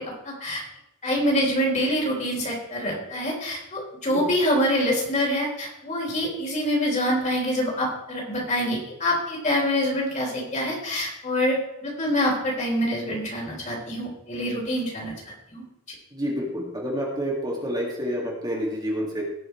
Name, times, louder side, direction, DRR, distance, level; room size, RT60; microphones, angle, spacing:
voice 1, 0.2-0.6 1.0-15.1 15.5-15.6, equal, 35° left, -2 dB, 3.7 m, -25 dB
voice 2, 16.1-19.2, equal, 20° right, -3 dB, 2.3 m, -28 dB
18.5 x 6.2 x 4.5 m, 0.85 s
head